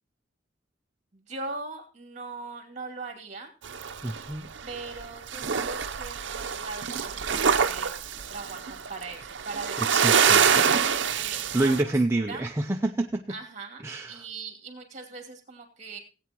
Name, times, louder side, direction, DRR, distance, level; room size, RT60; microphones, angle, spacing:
voice 1, 1.1-3.5 4.7-7.9 8.3-10.3 11.2-12.4 13.3-16.0, right 3 dB, 35° right, 4 dB, 2.6 m, -40 dB
sound 1, 3.6-5.0 5.3-11.8, right 7 dB, 65° right, 0.7 m, -25 dB
voice 2, 4.0-4.5 9.9-10.4 11.5-13.2 13.8-14.2, right 2 dB, 15° right, 3 dB, 0.4 m, -27 dB
17.5 x 8.6 x 3.0 m, 0.34 s
head